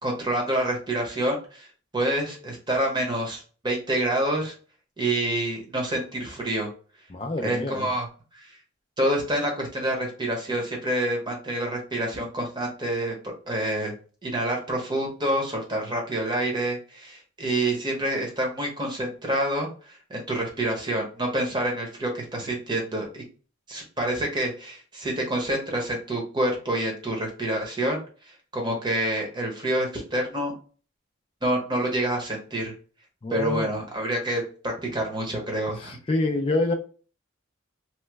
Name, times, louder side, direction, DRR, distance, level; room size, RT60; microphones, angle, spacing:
voice 1, 0.0-1.7 1.9-4.5 5.0-6.7 7.4-8.1 8.3-8.6 9.0-13.1 13.5-13.9 14.2-23.2 23.7-28.0 28.5-30.5 31.4-32.7 33.3-36.0, right 1 dB, 20° right, 0.8 m, -27 dB
voice 2, 7.1-7.9 33.2-33.7 35.8-36.7, left 2 dB, 25° left, 0.3 m, -27 dB
3.0 x 2.1 x 3.3 m
head